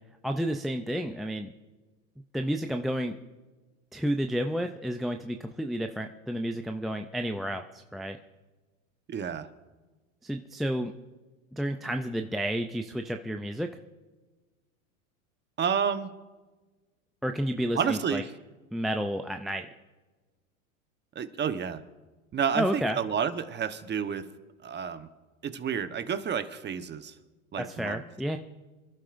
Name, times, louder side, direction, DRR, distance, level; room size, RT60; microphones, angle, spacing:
voice 1, 0.2-1.5 2.3-3.2 3.9-8.2 10.2-10.9 11.5-13.7 17.2-18.2 18.7-19.7 22.6-23.0 27.6-28.4, equal, ahead, 5 dB, 0.3 m, -31 dB
voice 2, 9.1-9.5 15.6-16.1 17.8-18.3 21.1-21.8 22.3-24.2 24.6-25.1 25.4-27.1 27.5-28.0, right 7 dB, 25° right, 10 dB, 1.0 m, -30 dB
27.0 x 11.5 x 2.5 m, 1.2 s
hypercardioid pair, 95°, 41 cm